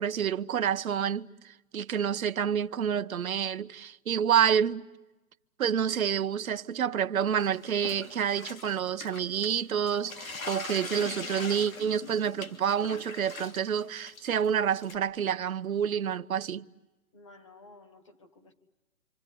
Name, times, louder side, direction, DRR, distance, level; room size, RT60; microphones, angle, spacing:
voice 1, 0.0-4.9 5.6-16.6, right 8 dB, 70° right, 0.9 m, -28 dB
sound 1, 7.4-9.6 9.9-15.0, left 4 dB, 65° left, 3.0 m, -42 dB
voice 2, 17.1-18.5, left 3 dB, 20° left, 1.3 m, -54 dB
27.0 x 26.5 x 8.3 m
hypercardioid pair, 175°, 44 cm